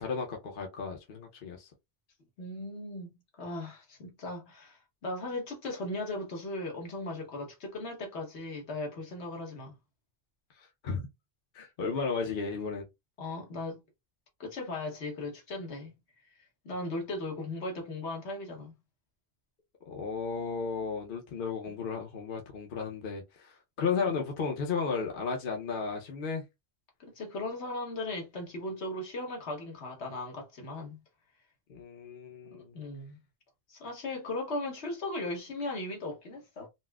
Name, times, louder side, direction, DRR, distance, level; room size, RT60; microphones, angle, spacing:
voice 1, 0.0-1.7 10.6-11.1 11.5-12.9 19.9-26.4 31.7-32.7, left 5 dB, 55° left, 0.9 m, -34 dB
voice 2, 2.4-9.7 11.6-11.7 13.2-13.8 14.4-15.9 16.4-18.8 24.0-24.2 27.0-31.0 32.5-33.2 33.7-36.7, left 2 dB, 75° left, 1.3 m, -37 dB
4.1 x 2.0 x 2.3 m
omnidirectional pair, 1.1 m